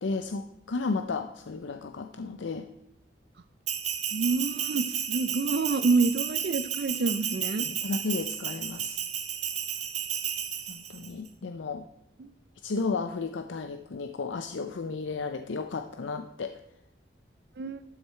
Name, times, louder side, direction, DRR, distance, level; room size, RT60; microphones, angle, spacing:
voice 1, 0.0-2.7 7.6-9.0 10.7-11.8 12.6-16.6, left 4 dB, 80° left, 8 dB, 0.5 m, -33 dB
Bell, 3.7-11.1, right 9 dB, 35° right, 0.9 m, -32 dB
voice 2, 4.1-7.7 12.2-12.3 17.6-17.8, right 3 dB, 55° right, 11 dB, 0.4 m, -27 dB
12.0 x 6.5 x 4.3 m, 0.84 s
head